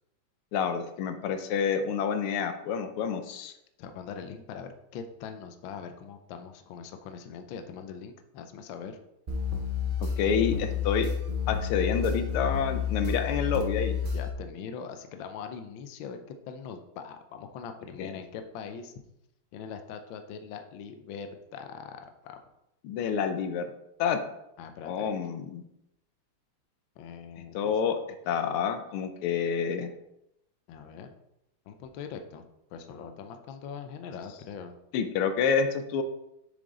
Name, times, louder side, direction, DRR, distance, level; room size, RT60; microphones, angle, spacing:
voice 1, 0.5-3.5 10.2-11.1 11.5-14.0 18.0-18.1 22.8-23.7 24.0-24.2 24.9-25.6 27.5-28.0 28.3-29.9 34.9-36.0, left 6 dB, 90° left, 7 dB, 1.6 m, -28 dB
voice 2, 3.8-9.0 14.0-18.9 19.5-22.4 24.6-25.1 27.0-27.7 30.7-31.1 31.7-32.4 32.7-34.7, left 6 dB, 70° left, 7 dB, 1.4 m, -42 dB
sound 1, 9.3-14.3, left 7 dB, 85° right, 0.4 m, -30 dB
7.0 x 5.1 x 3.8 m, 0.83 s
omnidirectional pair, 2.3 m